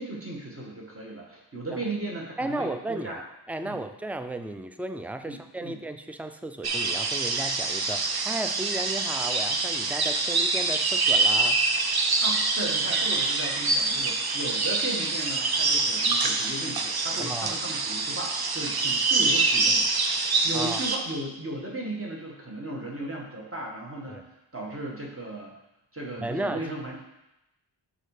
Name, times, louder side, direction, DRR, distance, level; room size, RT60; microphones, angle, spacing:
voice 1, 0.0-3.2 3.6-3.8 5.2-5.8 12.2-24.3 24.5-25.5 25.9-26.9, right 2 dB, 30° right, -2 dB, 1.7 m, -36 dB
voice 2, 2.4-3.2 3.5-11.6 17.2-17.6 20.5-20.8 24.1-24.2 26.2-26.6, right 2 dB, 5° right, 8 dB, 0.4 m, -34 dB
sound 1, 6.6-21.0, right 3 dB, 55° right, 0.7 m, -25 dB
6.5 x 4.2 x 4.9 m, 0.89 s
wide cardioid pair, 60°, 45 cm